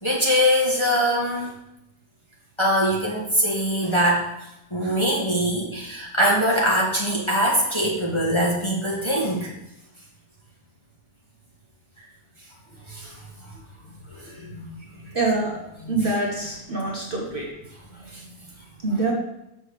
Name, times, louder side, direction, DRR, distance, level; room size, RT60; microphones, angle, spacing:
voice 1, 0.0-1.5 2.6-4.3 4.7-9.5 12.9-13.2 14.1-15.2 15.8-16.0 18.0-18.3, equal, 20° left, -4 dB, 1.5 m, -23 dB
voice 2, 15.1-15.5 15.9-17.5 18.8-19.1, right 2 dB, 35° right, -3 dB, 1.3 m, -25 dB
6.2 x 5.2 x 6.7 m, 0.87 s
omnidirectional pair, 1.7 m